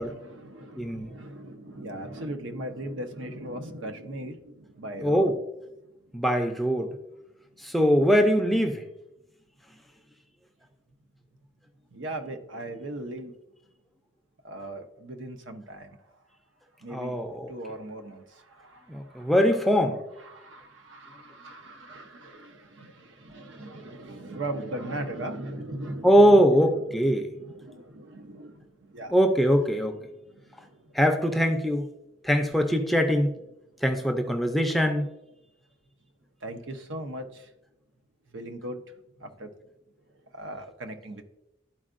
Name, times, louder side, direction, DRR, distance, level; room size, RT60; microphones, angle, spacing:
voice 1, 0.0-5.3 11.9-13.3 14.4-16.0 16.8-17.1 17.5-19.3 20.2-29.2 30.1-31.0 36.4-37.5 38.3-38.8 39.2-39.5 40.3-41.2, right 1 dB, 80° right, 6 dB, 0.8 m, -39 dB
voice 2, 0.8-1.1 5.0-5.4 6.1-6.9 7.6-8.8 16.9-17.5 18.9-20.0 26.0-27.3 29.1-30.0 30.9-31.9 32.2-33.3 33.8-35.1, equal, ahead, 5 dB, 0.4 m, -22 dB
12.0 x 4.5 x 2.5 m, 0.90 s
head